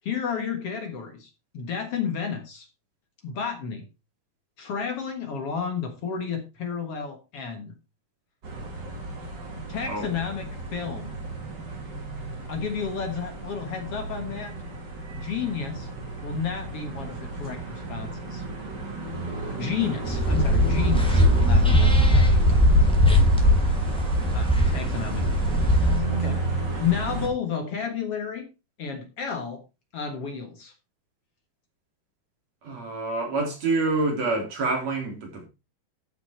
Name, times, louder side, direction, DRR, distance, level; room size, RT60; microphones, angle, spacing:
voice 1, 0.0-2.7 3.2-3.9 4.6-7.8 9.7-11.2 12.5-14.5 15.1-15.9 16.2-18.4 19.6-22.7 24.3-28.5 28.8-29.6 29.9-30.7, left 6 dB, 55° left, 2.2 m, -32 dB
sound 1, 8.4-27.3, right 2 dB, 35° right, 2.6 m, -33 dB
voice 2, 9.9-10.2 32.6-35.5, right 3 dB, 55° right, 4.5 m, -27 dB
sound 2, 20.1-26.0, equal, ahead, 1.4 m, -19 dB
12.5 x 6.1 x 4.4 m
omnidirectional pair, 3.6 m